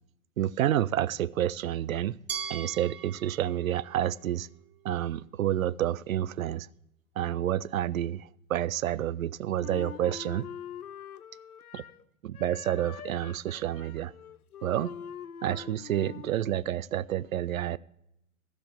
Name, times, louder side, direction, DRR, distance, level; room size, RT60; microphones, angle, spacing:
voice 1, 0.4-2.2 2.5-4.5 4.8-6.7 7.2-10.5 11.7-11.8 12.2-14.1 14.6-14.9 15.4-17.8, right 11 dB, 65° right, 0.5 m, -29 dB
Glass, 2.3-5.2, right 8 dB, 45° right, 1.0 m, -41 dB
Wind instrument woodwind instrument, 9.6-12.0 12.3-16.4, left 8 dB, 80° left, 0.6 m, -44 dB
14.0 x 5.0 x 7.4 m
figure-of-eight pair, 105°, 44 cm